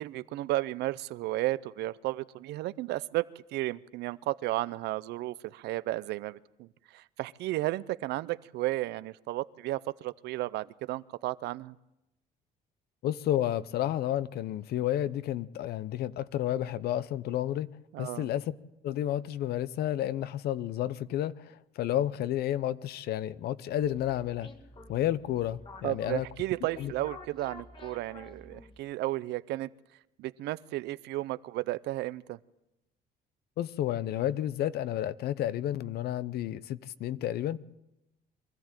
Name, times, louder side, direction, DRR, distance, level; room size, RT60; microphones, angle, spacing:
voice 1, 0.0-3.2 3.5-11.7 17.9-18.3 25.8-29.7 30.2-32.4, right 17 dB, 80° right, 0.6 m, -33 dB
voice 2, 13.0-17.7 18.0-18.5 18.8-24.5 24.9-26.3 26.8-26.9 33.6-37.6, left 12 dB, 70° left, 0.7 m, -31 dB
sound 1, 23.8-28.9, left 2 dB, 30° left, 2.0 m, -50 dB
23.5 x 14.0 x 9.0 m
cardioid pair, 110°, 17 cm